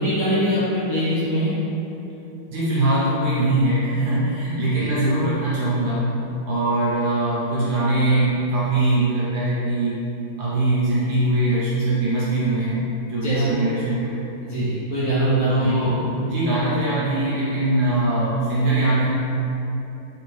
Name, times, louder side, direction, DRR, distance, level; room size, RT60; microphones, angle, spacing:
voice 1, 0.0-1.5 4.7-4.9 13.2-13.6 14.4-15.9, right 1 dB, 55° left, -12 dB, 1.1 m, -22 dB
voice 2, 2.5-6.1 6.4-10.0 10.4-14.2 15.4-19.1, right 1 dB, 65° right, -9 dB, 1.2 m, -22 dB
3.5 x 3.2 x 3.0 m, 3.0 s
omnidirectional pair, 2.3 m